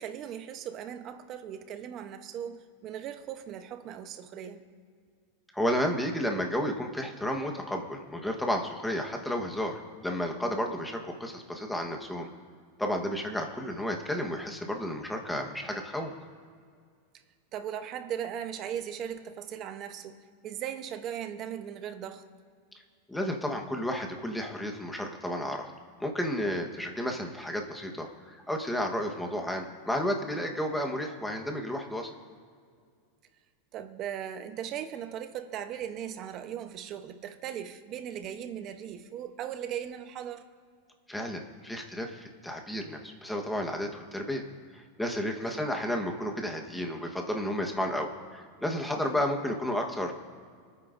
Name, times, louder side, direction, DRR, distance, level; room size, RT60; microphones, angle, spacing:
voice 1, 0.0-4.6 17.5-22.2 33.7-40.4 45.4-45.6 49.0-49.1, right 9 dB, 35° right, 9 dB, 0.9 m, -38 dB
voice 2, 5.5-12.3 12.8-16.1 23.1-25.7 26.0-32.1 41.1-44.4 44.7-50.1, equal, 5° left, 3 dB, 1.3 m, -32 dB
27.5 x 9.3 x 2.6 m, 2.1 s
supercardioid pair, 145°, 0 cm